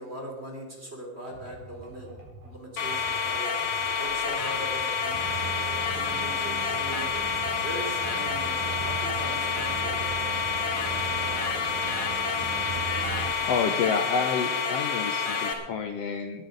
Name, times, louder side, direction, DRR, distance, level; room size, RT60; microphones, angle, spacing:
voice 1, 0.0-2.1 2.5-3.5 4.0-5.2 5.6-7.1 7.6-10.2, equal, 20° right, 0 dB, 2.6 m, -40 dB
sound 1, 1.3-11.2 11.6-13.3, right 2 dB, 50° right, 5.3 m, -47 dB
sound 2, 2.8-15.5, left 5 dB, 50° left, 2.9 m, -28 dB
sound 3, 5.1-13.4, right 9 dB, 80° right, 1.9 m, -38 dB
voice 2, 13.4-16.5, left 5 dB, 85° left, 6 dB, 1.4 m, -29 dB
21.0 x 9.2 x 5.2 m, 1.2 s
omnidirectional pair, 4.0 m